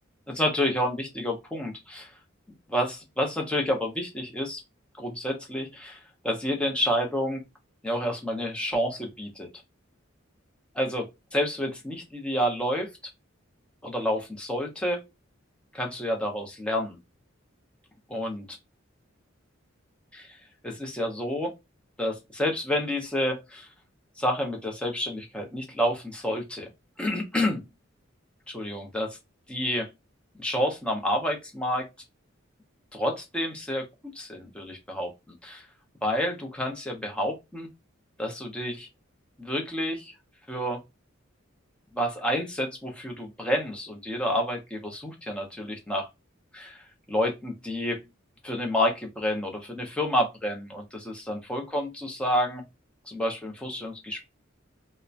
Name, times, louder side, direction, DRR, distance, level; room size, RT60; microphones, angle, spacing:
voice 1, 0.3-2.1 2.7-4.6 5.0-7.4 7.8-9.5 10.8-11.1 11.3-12.9 13.8-15.0 15.7-17.0 18.1-18.5 20.1-20.4 20.6-21.5 22.0-23.7 24.2-26.7 27.0-27.7 28.5-29.2 29.5-29.9 30.4-31.9 32.9-33.8 34.1-35.1 35.4-35.7 36.0-37.7 38.2-38.9 39.4-40.1 40.5-40.8 41.9-46.1 46.5-46.8 47.1-48.0 48.4-52.6 53.1-54.3, equal, 5° left, 0.7 m, -29 dB
2.9 x 2.1 x 2.4 m
head